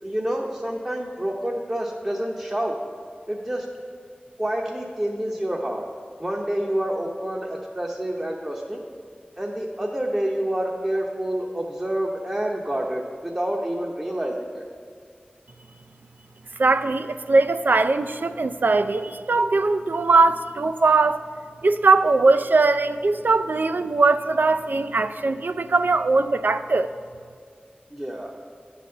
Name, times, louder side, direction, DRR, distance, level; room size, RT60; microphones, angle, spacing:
voice 1, 0.0-2.8 3.3-3.7 4.4-5.8 6.2-8.8 9.4-14.6 27.9-28.3, right 1 dB, 25° right, -2 dB, 0.7 m, -28 dB
voice 2, 16.6-21.2 21.6-26.9, right 3 dB, 65° right, 11 dB, 0.3 m, -20 dB
9.3 x 4.0 x 6.5 m, 2.1 s
wide cardioid pair, 50°, 3 cm